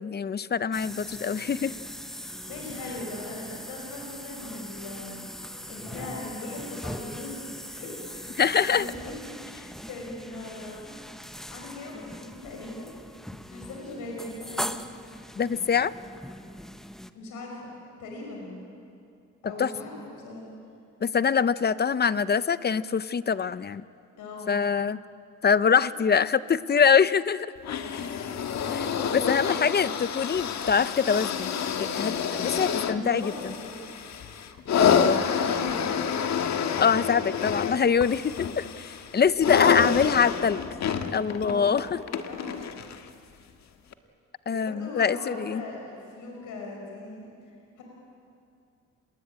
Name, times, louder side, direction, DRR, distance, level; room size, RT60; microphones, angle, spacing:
voice 1, 0.0-1.7 8.4-8.9 15.4-15.9 19.6-19.7 21.0-23.8 24.5-25.0 25.4-27.5 28.7-31.5 31.8-33.3 34.8-35.2 36.8-40.6 41.1-42.0 44.5-45.6, left 6 dB, 35° left, 16 dB, 0.8 m, -24 dB
sound 1, 0.7-17.1, equal, ahead, 1.1 m, -40 dB
voice 2, 2.3-5.2 5.7-7.4 7.7-8.3 8.6-9.2 9.5-10.9 11.4-12.9 13.5-14.8 17.1-18.6 19.4-20.5 24.2-24.6 25.9-26.0 29.1-29.7 32.9-33.7 35.3-36.0 39.4-39.7 41.4-41.8 42.3-42.7 44.5-47.3 47.8-47.9, left 2 dB, 85° left, 0 dB, 6.0 m, -39 dB
sound 2, 27.6-43.1 43.9-44.0, left 7 dB, 65° left, 1.6 m, -28 dB
27.5 x 21.5 x 8.8 m, 2.5 s
cardioid pair, 90°, 30 cm